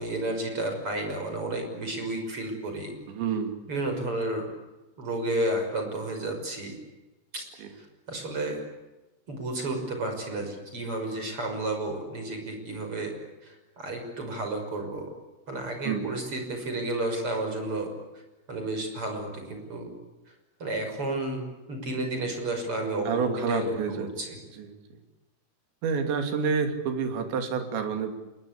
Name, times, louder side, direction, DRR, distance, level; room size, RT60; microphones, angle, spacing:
voice 1, 0.0-2.9 3.7-4.5 5.0-6.7 7.3-7.5 7.7-8.6 9.3-13.1 13.4-15.1 15.5-17.9 18.5-19.9 20.6-24.4, right 2 dB, 30° right, 4 dB, 6.5 m, -32 dB
voice 2, 3.1-3.6 7.6-7.7 15.9-16.1 23.1-24.1 24.5-24.8 25.8-28.1, right 6 dB, 70° right, 6 dB, 4.9 m, -28 dB
27.5 x 22.0 x 8.4 m, 1.1 s
omnidirectional pair, 5.4 m